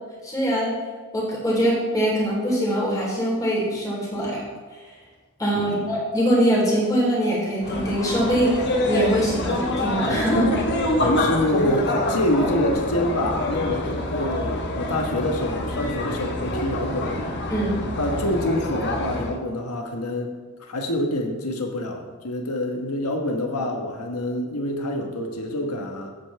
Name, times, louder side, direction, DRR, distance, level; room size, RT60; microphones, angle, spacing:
voice 1, 0.2-0.8 1.1-4.4 5.4-10.6 17.5-17.8, equal, 15° left, -5 dB, 3.5 m, -23 dB
sound 1, 7.6-19.4, left 1 dB, 50° left, 1.2 m, -26 dB
voice 2, 11.0-17.2 18.0-20.3 20.6-26.1, left 1 dB, 90° left, 3 dB, 1.3 m, -26 dB
15.0 x 8.3 x 3.4 m, 1.4 s
head